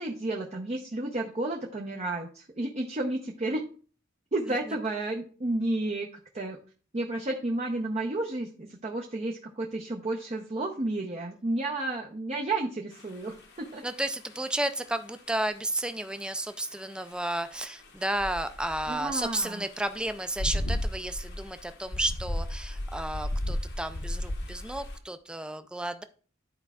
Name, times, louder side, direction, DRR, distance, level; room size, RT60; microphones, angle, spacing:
voice 1, 0.0-3.6 4.3-6.1 6.3-6.6 6.9-13.8 18.9-19.6, right 2 dB, 35° right, 0 dB, 0.7 m, -31 dB
sound 1, 12.9-15.3 15.8-25.0, left 1 dB, 55° left, 1.0 m, -35 dB
voice 2, 13.8-26.0, right 1 dB, 5° right, 10 dB, 0.4 m, -32 dB
12.0 x 4.6 x 2.3 m, 0.41 s
head